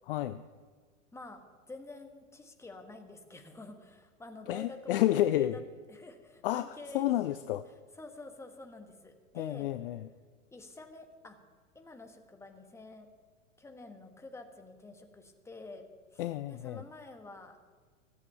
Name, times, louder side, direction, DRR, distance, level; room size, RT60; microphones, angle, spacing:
voice 1, 0.1-0.4 4.5-5.6 6.4-7.7 9.3-10.1 16.2-16.8, left 13 dB, 45° left, 13 dB, 0.5 m, -30 dB
voice 2, 1.7-5.6 5.9-7.1 7.4-7.6 8.0-9.7 10.5-11.4 11.7-13.1 13.6-15.9 16.1-17.7, left 2 dB, 5° left, 5 dB, 1.4 m, -48 dB
15.5 x 8.2 x 7.0 m, 1.5 s
figure-of-eight pair, 100°, 40 cm